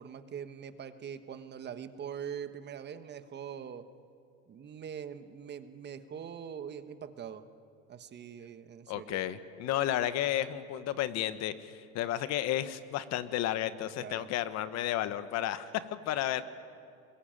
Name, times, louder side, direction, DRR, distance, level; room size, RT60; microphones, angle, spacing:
voice 1, 0.0-3.8 4.5-7.4 7.9-9.2 14.0-14.3 16.4-16.5, right 8 dB, 30° right, 10 dB, 1.3 m, -43 dB
voice 2, 8.9-16.4, left 12 dB, 50° left, 12 dB, 1.3 m, -32 dB
23.0 x 21.5 x 9.0 m, 2.5 s
supercardioid pair, 120°, 33 cm